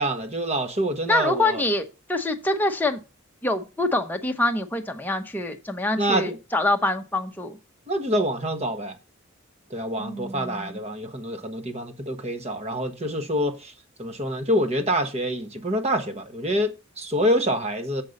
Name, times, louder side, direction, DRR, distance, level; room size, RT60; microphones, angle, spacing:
voice 1, 0.0-1.6 5.9-6.4 7.9-9.0 9.7-13.7 14.0-18.0, equal, 30° right, 1.2 m, -26 dB
voice 2, 1.1-3.0 3.4-7.6 10.0-10.8, left 2 dB, 10° left, 1.0 m, -25 dB
7.5 x 5.4 x 6.5 m
head